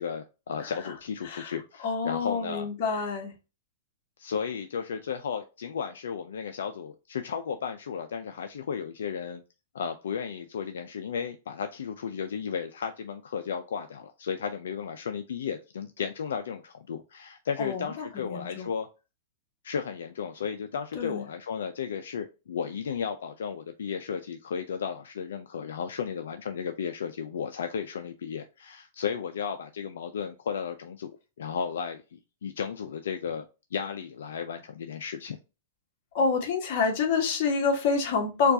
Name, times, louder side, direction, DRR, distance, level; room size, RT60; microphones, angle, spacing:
voice 1, 0.0-2.7 4.2-9.4 9.7-18.9 19.6-31.1 31.4-33.5 33.7-35.4, left 7 dB, 80° left, 0.4 m, -34 dB
voice 2, 1.8-3.3 17.6-18.7 20.9-21.2 36.1-38.5, left 5 dB, 50° left, 1.3 m, -27 dB
4.4 x 2.4 x 2.6 m
hypercardioid pair, 135°, 0 cm